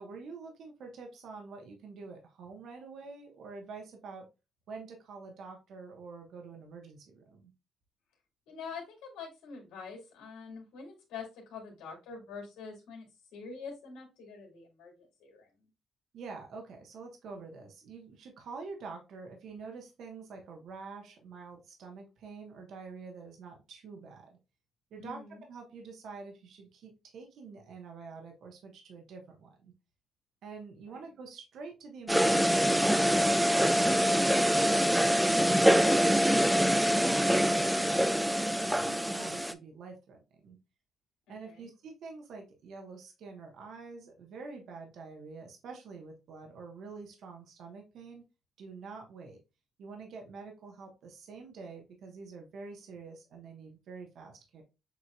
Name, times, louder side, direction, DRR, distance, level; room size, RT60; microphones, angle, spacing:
voice 1, 0.0-4.3 4.7-7.5 16.1-24.4 24.9-25.2 25.5-29.7 30.4-36.0 36.4-38.3 38.7-40.6 41.3-48.2 48.6-49.4 49.8-54.6, right 4 dB, 70° right, 2 dB, 1.2 m, -46 dB
voice 2, 8.5-15.5 25.0-25.4 30.8-31.0 41.3-41.7, left 5 dB, 90° left, 1 dB, 2.1 m, -45 dB
sound 1, 32.1-39.5, equal, 5° right, 0.4 m, -25 dB
7.2 x 2.9 x 2.4 m, 0.27 s
cardioid pair, 90°, 0 cm